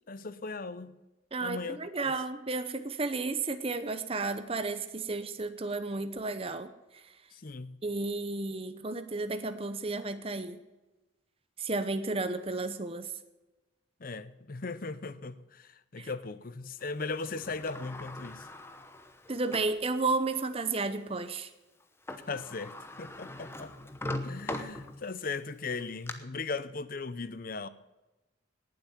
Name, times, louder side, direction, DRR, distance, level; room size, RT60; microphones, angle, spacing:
voice 1, 0.1-1.0 1.4-2.1 7.3-7.8 14.0-18.5 22.3-23.7 24.2-27.7, left 4 dB, 45° left, 0.7 m, -38 dB
voice 2, 1.3-6.7 7.8-10.6 11.6-13.1 16.0-16.1 19.3-21.5, right 3 dB, 30° right, 0.8 m, -32 dB
Sliding door, 17.2-19.8 20.4-20.5 21.8-21.9 22.1-25.3 25.7-26.1, left 1 dB, 15° left, 0.9 m, -41 dB
18.5 x 7.8 x 7.3 m
head